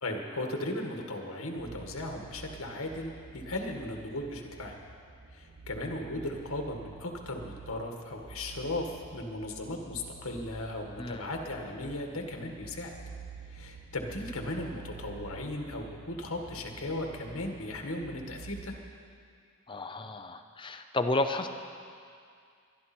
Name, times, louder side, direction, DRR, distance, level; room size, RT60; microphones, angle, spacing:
voice 1, 0.0-4.8 5.3-13.0 13.5-18.8, left 1 dB, 80° left, 2 dB, 1.8 m, -37 dB
sound 1, 1.6-18.7, right 5 dB, 40° right, 0.8 m, -49 dB
voice 2, 11.0-11.3 19.7-21.5, left 2 dB, 20° left, 7 dB, 0.6 m, -32 dB
22.0 x 11.5 x 4.4 m, 2.3 s
head